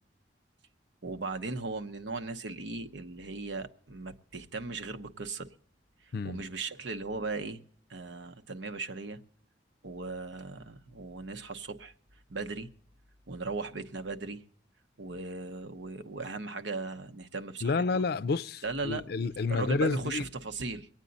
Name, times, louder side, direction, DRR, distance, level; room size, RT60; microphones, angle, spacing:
voice 1, 1.0-5.5 6.2-7.6 7.9-9.2 9.8-11.9 12.3-12.7 13.3-14.4 15.0-18.0 18.6-19.0 19.5-20.9, right 3 dB, 75° right, 1.0 m, -37 dB
voice 2, 6.1-6.4 17.6-20.3, left 4 dB, 55° left, 0.4 m, -30 dB
23.5 x 9.1 x 4.0 m
head